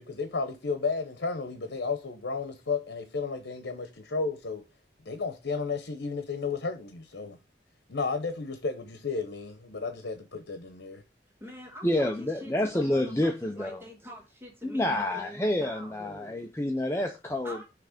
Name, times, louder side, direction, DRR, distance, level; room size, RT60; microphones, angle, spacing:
voice 1, 0.0-4.6 5.0-7.4 7.9-11.0, left 4 dB, 90° left, 0.8 m, -33 dB
voice 2, 11.3-16.4 17.4-17.6, equal, 15° right, 1.3 m, -46 dB
voice 3, 11.8-13.8 14.6-17.6, left 1 dB, 15° left, 0.5 m, -28 dB
5.9 x 3.4 x 4.9 m
head